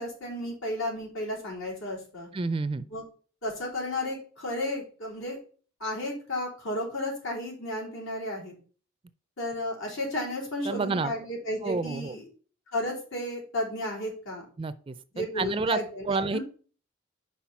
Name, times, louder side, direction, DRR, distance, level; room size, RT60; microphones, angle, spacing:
voice 1, 0.0-2.3 2.9-3.0 3.4-5.4 5.8-8.5 9.4-12.2 12.7-14.4 15.1-16.4, left 1 dB, 80° left, -3 dB, 3.8 m, -33 dB
voice 2, 2.3-2.8 10.7-11.1 11.6-12.2 14.6-16.4, right 3 dB, 25° right, 14 dB, 0.3 m, -29 dB
5.8 x 4.7 x 5.7 m, 0.40 s
head